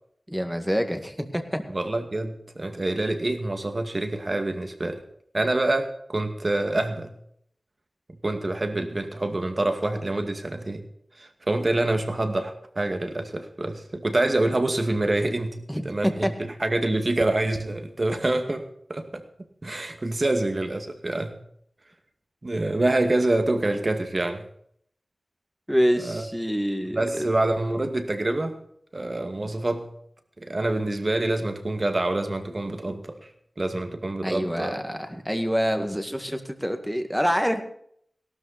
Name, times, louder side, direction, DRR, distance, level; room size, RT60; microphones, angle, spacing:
voice 1, 0.3-1.7 15.7-16.3 25.7-27.3 34.2-37.6, equal, ahead, 7 dB, 1.9 m, -26 dB
voice 2, 1.7-5.0 5.3-7.1 8.2-10.8 11.2-19.2 19.6-21.4 22.4-24.4 26.0-26.3 26.9-28.5 28.9-29.9 30.4-33.2 33.6-34.8, right 2 dB, 40° right, 6 dB, 2.2 m, -26 dB
17.0 x 12.5 x 4.2 m, 0.66 s
wide cardioid pair, 65°, 0 cm